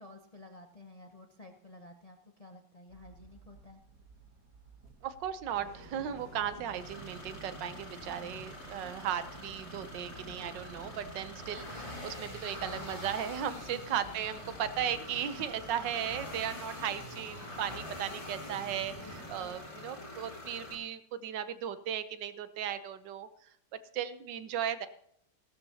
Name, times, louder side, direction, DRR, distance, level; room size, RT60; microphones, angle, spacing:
voice 1, 0.0-3.8 13.7-13.8 19.0-19.1, left 2 dB, 75° left, 4 dB, 0.3 m, -52 dB
sound 1, 2.9-15.9, right 4 dB, 50° right, 1.4 m, -58 dB
voice 2, 5.0-23.5 23.9-24.9, right 9 dB, 70° right, 12 dB, 1.4 m, -36 dB
sound 2, 5.5-19.6, right 1 dB, 10° left, 1.8 m, -50 dB
sound 3, 6.7-20.7, left 1 dB, 25° left, 2.2 m, -46 dB
16.5 x 12.5 x 2.8 m, 0.72 s
omnidirectional pair, 2.1 m